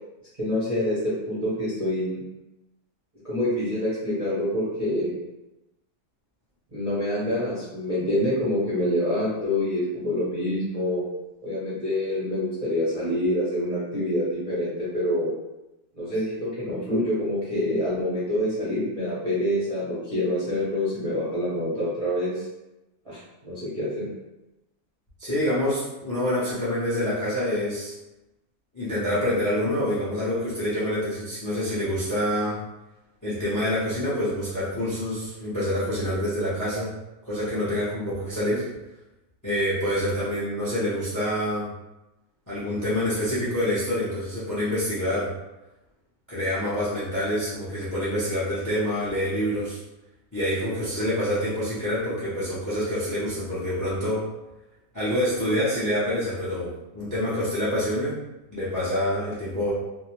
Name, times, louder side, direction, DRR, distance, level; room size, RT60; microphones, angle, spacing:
voice 1, 0.4-2.2 3.2-5.1 6.7-11.0 11.4-15.3 16.0-22.4 23.1-24.1, left 1 dB, 35° right, -10 dB, 0.5 m, -26 dB
voice 2, 25.2-27.9 28.7-32.6 33.2-36.9 37.3-38.6 39.4-41.7 42.5-45.3 46.3-49.8 50.3-54.2 54.9-58.1 58.5-59.7, equal, 25° left, -9 dB, 0.4 m, -26 dB
2.6 x 2.1 x 2.9 m, 0.98 s
omnidirectional pair, 1.6 m